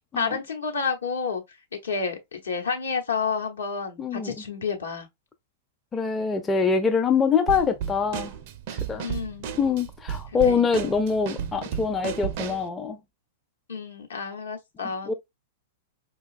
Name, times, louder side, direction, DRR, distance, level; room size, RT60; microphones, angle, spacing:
voice 1, 0.1-1.4 1.8-5.1 9.0-9.5 10.4-10.6 13.7-15.1, left 5 dB, 70° left, 1.0 m, -30 dB
voice 2, 4.0-4.4 5.9-8.3 8.7-9.1 9.6-13.0 15.1-15.2, left 5 dB, 15° left, 0.4 m, -24 dB
Drum kit / Snare drum, 7.5-12.7, right 8 dB, 45° right, 0.4 m, -34 dB
4.9 x 2.3 x 2.5 m
figure-of-eight pair, 100°, 0 cm